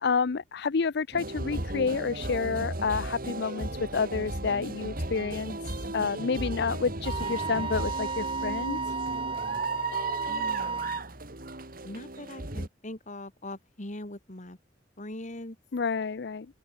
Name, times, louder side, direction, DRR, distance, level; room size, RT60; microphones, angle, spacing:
voice 1, 0.0-5.5 5.9-8.8 15.7-16.5, left 5 dB, 65° left, 0.5 m, -29 dB
sound 1, 1.1-12.7, right 2 dB, 55° right, 3.7 m, -35 dB
Wind instrument woodwind instrument, 7.0-11.0, right 5 dB, 30° right, 2.4 m, -33 dB
voice 2, 10.3-11.0 11.8-14.6 15.0-15.6, left 1 dB, 45° left, 2.6 m, -41 dB
open air
head